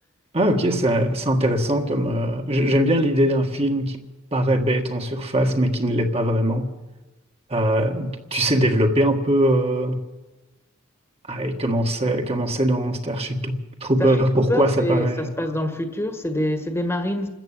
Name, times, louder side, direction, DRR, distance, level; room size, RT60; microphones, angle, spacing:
voice 1, 0.3-4.0 4.3-6.7 7.5-10.1 11.3-15.3, right 1 dB, 30° right, 1.6 m, -21 dB
voice 2, 14.0-17.3, left 1 dB, 10° left, 1.7 m, -26 dB
27.5 x 14.0 x 8.9 m
head